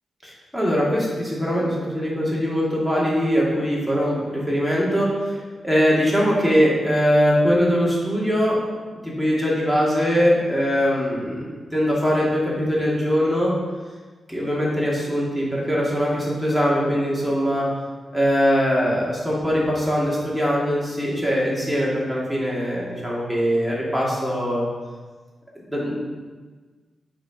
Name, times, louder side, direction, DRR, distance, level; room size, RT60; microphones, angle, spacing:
voice 1, 0.2-8.6 9.0-13.5 14.3-17.7 18.1-24.6 25.7-25.9, equal, ahead, -5 dB, 2.3 m, -21 dB
7.5 x 4.8 x 5.2 m, 1.4 s
wide cardioid pair, 105°, 0 cm